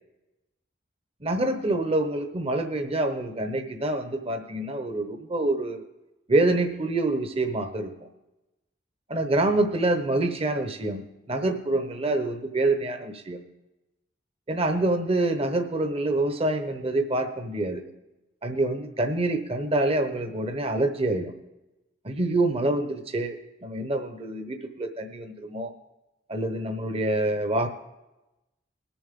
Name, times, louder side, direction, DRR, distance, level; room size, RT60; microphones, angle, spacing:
voice 1, 1.2-5.9 6.3-7.9 9.1-13.4 14.5-17.8 18.4-21.3 22.0-23.4 23.6-25.7 26.3-27.7, right 2 dB, 35° right, 6 dB, 0.9 m, -26 dB
20.5 x 7.2 x 3.7 m, 0.98 s
head